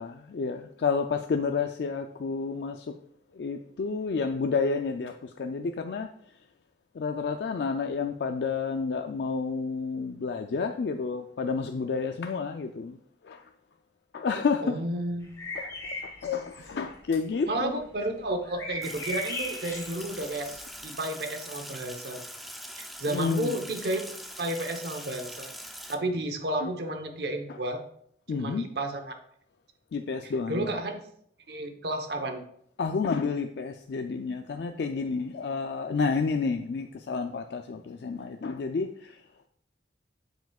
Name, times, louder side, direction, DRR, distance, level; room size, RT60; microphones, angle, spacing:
voice 1, 0.0-2.9 3.3-6.1 6.9-13.0 13.2-13.5 14.1-14.8 15.6-15.7 16.0-17.7 23.1-23.6 26.6-26.7 27.5-27.6 28.3-28.7 29.9-30.7 32.8-39.2, left 4 dB, 65° left, 6 dB, 0.4 m, -30 dB
voice 2, 14.6-15.3 17.5-20.5 20.8-22.2 22.8-24.0 24.4-25.5 25.9-27.8 28.3-29.1 30.5-31.0 31.5-32.4, right 1 dB, 65° right, 5 dB, 0.9 m, -32 dB
sound 1, 15.2-17.0 17.4-17.5 17.8-20.7, left 1 dB, 15° left, 1.4 m, -38 dB
Sink (filling or washing), 18.8-25.9, equal, ahead, 0.4 m, -42 dB
7.7 x 7.1 x 2.3 m, 0.67 s
head